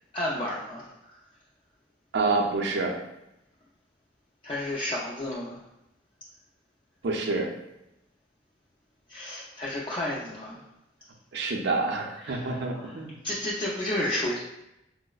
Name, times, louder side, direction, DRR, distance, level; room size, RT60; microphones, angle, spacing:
voice 1, 0.1-1.2 4.4-5.6 9.1-10.6 12.2-14.4, left 1 dB, 25° left, -5 dB, 0.4 m, -32 dB
voice 2, 2.1-2.9 7.0-7.5 11.3-13.2, right 3 dB, 65° right, 2 dB, 0.5 m, -27 dB
4.5 x 2.0 x 2.3 m, 0.86 s
head